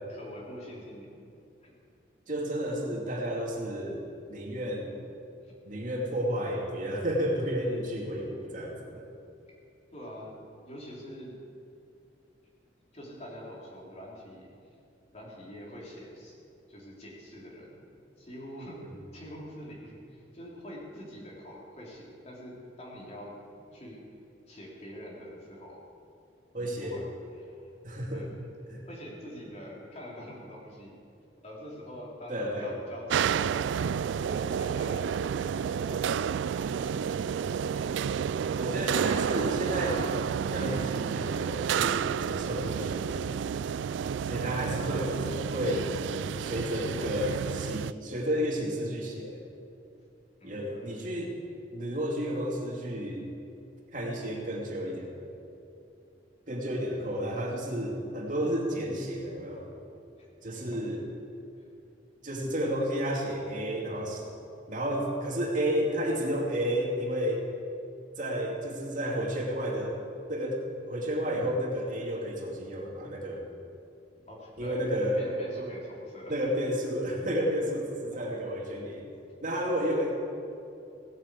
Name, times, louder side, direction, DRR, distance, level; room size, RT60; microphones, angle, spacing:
voice 1, 0.1-1.3 1.6-1.7 5.4-5.6 9.9-11.4 12.9-14.5 15.1-16.3 16.7-17.8 18.2-18.9 19.1-24.1 24.5-25.8 26.6-27.1 27.3-27.7 28.1-28.3 28.9-31.0 31.4-33.5 33.8-38.4 44.5-44.9 46.4-47.1 50.4-50.9 60.6-60.7 74.3-76.3 78.1-78.2, equal, 35° left, -4 dB, 3.6 m, -45 dB
voice 2, 2.3-4.0 4.3-4.9 5.7-9.1 18.8-18.9 26.5-27.0 27.8-28.3 28.7-28.8 32.3-32.8 38.6-40.1 40.4-43.6 44.2-45.9 46.4-49.4 50.4-51.3 51.7-53.2 53.9-55.4 56.5-59.7 60.4-61.0 62.2-64.2 64.7-67.5 68.2-70.0 70.3-73.5 74.6-75.2 76.3-79.1 79.4-80.1, equal, 45° right, -2 dB, 2.6 m, -31 dB
sound 1, 33.1-47.9, right 7 dB, 75° right, 0.3 m, -30 dB
17.5 x 8.7 x 8.4 m, 2.7 s
head